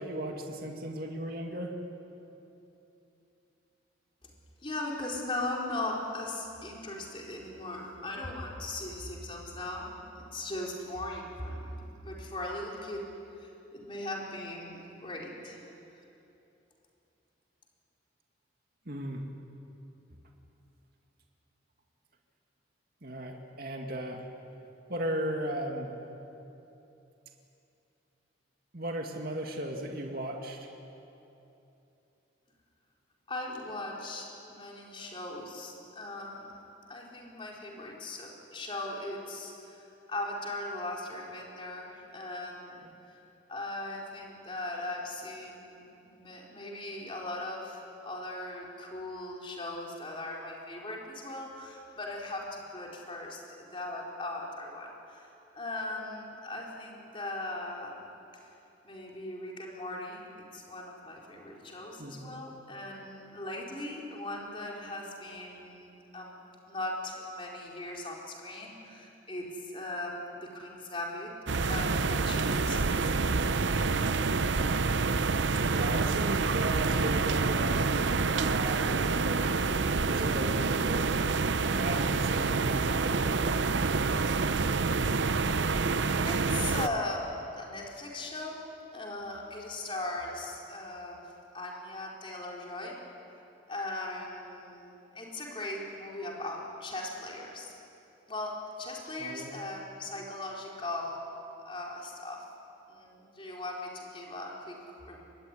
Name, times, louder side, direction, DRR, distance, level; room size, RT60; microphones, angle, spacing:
voice 1, 0.0-1.7 18.9-19.2 23.0-24.2 24.9-25.9 28.7-30.7 62.0-62.3 75.6-79.6 80.1-81.2 81.7-83.7 99.2-99.6, right 1 dB, 50° right, 2 dB, 2.2 m, -36 dB
voice 2, 4.6-13.0 13.3-15.7 33.3-36.6 36.9-43.2 43.5-58.0 58.3-58.5 58.8-66.4 66.7-71.3 71.7-73.3 73.6-74.2 86.2-88.6 88.9-93.0 93.7-97.7 98.3-102.4 102.9-104.8 105.0-105.2, left 2 dB, 25° left, -2 dB, 4.6 m, -39 dB
sound 1, 71.5-86.9, right 4 dB, 65° right, 0.7 m, -27 dB
25.0 x 21.5 x 10.0 m, 2.9 s
head